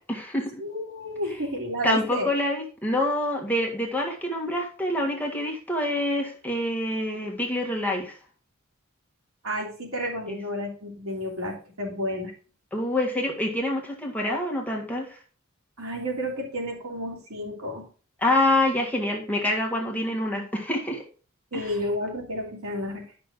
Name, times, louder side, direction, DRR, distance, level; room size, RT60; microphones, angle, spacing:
voice 1, 0.1-0.6 1.8-8.1 10.3-10.4 12.7-15.1 18.2-21.0 21.5-21.6, left 1 dB, 10° left, -1 dB, 1.7 m, -26 dB
voice 2, 0.6-2.3 9.4-12.3 15.8-17.9 21.5-23.0, equal, 80° right, -1 dB, 3.1 m, -31 dB
11.0 x 6.1 x 3.7 m, 0.39 s
head